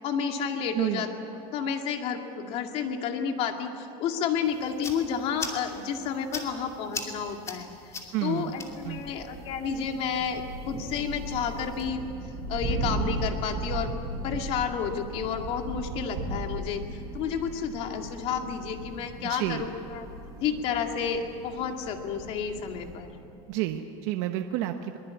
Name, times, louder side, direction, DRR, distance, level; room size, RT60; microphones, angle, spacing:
voice 1, 0.0-7.7 8.2-12.0 12.5-13.9 14.2-20.1 20.4-23.1, left 7 dB, 45° left, 4 dB, 2.2 m, -31 dB
voice 2, 0.7-1.1 8.1-8.5 8.8-9.0 19.2-19.7 23.5-25.0, right 13 dB, 60° right, 6 dB, 1.1 m, -30 dB
sound 1, 4.4-11.9, left 4 dB, 20° left, 2.6 m, -42 dB
Thunder, 8.6-23.2, right 2 dB, 25° right, 4.3 m, -37 dB
22.5 x 21.5 x 8.4 m, 2.8 s
supercardioid pair, 160°, 14 cm